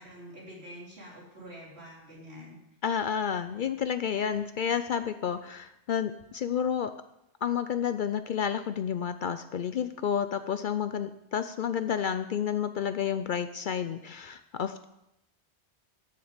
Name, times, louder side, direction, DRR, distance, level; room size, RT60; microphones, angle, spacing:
voice 1, 0.0-2.6, equal, 75° right, -4 dB, 3.6 m, -46 dB
voice 2, 2.8-5.4 5.9-6.1 6.4-6.9 7.4-11.1 11.3-14.0 14.6-14.8, left 8 dB, 60° left, 11 dB, 0.6 m, -30 dB
13.5 x 7.0 x 5.1 m, 0.85 s
omnidirectional pair, 1.1 m